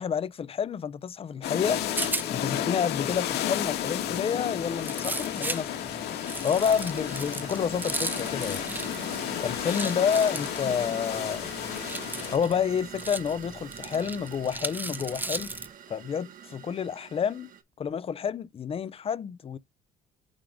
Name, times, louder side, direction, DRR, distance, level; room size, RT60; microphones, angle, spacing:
voice 1, 0.0-1.8 2.3-5.9 6.4-8.6 9.4-11.5 12.3-15.5 15.9-17.5 17.8-19.6, left 7 dB, 35° left, 0.6 m, -29 dB
sound 1, 1.4-12.4, left 11 dB, 80° left, 2.1 m, -32 dB
Rattle, 1.6-15.7, right 2 dB, 10° right, 0.7 m, -38 dB
sound 2, 4.3-17.6, right 9 dB, 55° right, 1.5 m, -45 dB
8.8 x 3.7 x 3.5 m
cardioid pair, 110°, 17 cm